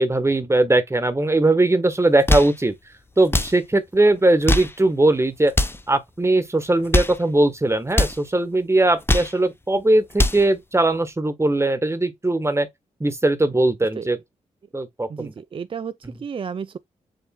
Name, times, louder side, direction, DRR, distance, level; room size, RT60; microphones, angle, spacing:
voice 1, 0.0-2.7 3.2-5.5 5.9-12.7 13.0-14.2 14.7-15.3 16.0-16.1, right 2 dB, 20° right, 1.3 m, -20 dB
sound 1, 2.1-2.6 3.2-3.6 4.3-4.8 5.5-5.9 6.7-7.2 7.9-8.2 8.9-9.4 9.9-10.5, left 1 dB, 15° left, 0.8 m, -22 dB
voice 2, 15.1-16.8, right 6 dB, 35° right, 0.4 m, -32 dB
7.2 x 3.2 x 2.3 m
supercardioid pair, 40°, 15 cm